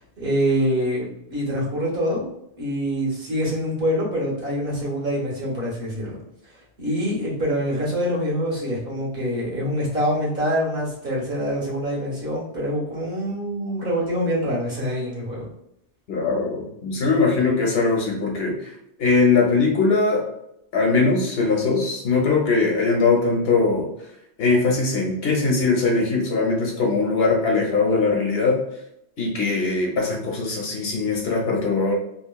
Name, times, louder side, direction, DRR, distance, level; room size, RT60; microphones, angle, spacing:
voice 1, 0.0-2.2 2.6-6.2 6.8-15.5, equal, 55° right, -6 dB, 1.3 m, -25 dB
voice 2, 16.1-18.6 19.0-20.2 20.7-23.9 24.4-28.6 29.2-31.9, left 4 dB, 60° left, -1 dB, 0.9 m, -21 dB
3.0 x 2.9 x 2.2 m, 0.78 s
omnidirectional pair, 1.2 m